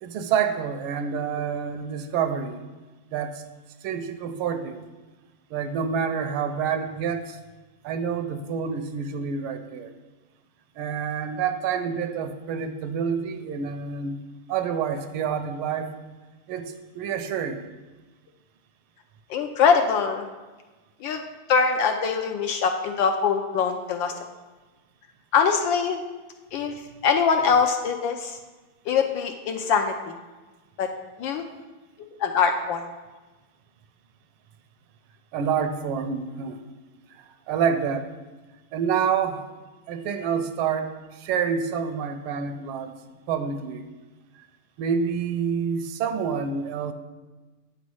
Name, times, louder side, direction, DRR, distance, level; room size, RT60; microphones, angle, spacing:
voice 1, 0.0-2.6 3.1-3.4 3.8-4.9 5.5-7.4 7.8-9.9 10.8-14.2 14.5-15.9 16.5-17.7 35.3-36.6 37.1-38.1 38.7-39.4 39.9-42.9 43.3-43.8 44.8-46.9, right 7 dB, 80° right, 8 dB, 1.4 m, -28 dB
voice 2, 19.3-20.3 21.0-21.2 21.5-24.1 25.3-26.0 26.5-26.7 27.0-28.4 28.9-30.2 30.8-30.9 31.2-31.4 32.2-32.9, left 6 dB, 75° left, 4 dB, 1.2 m, -23 dB
8.9 x 4.1 x 6.1 m, 1.2 s
omnidirectional pair, 2.4 m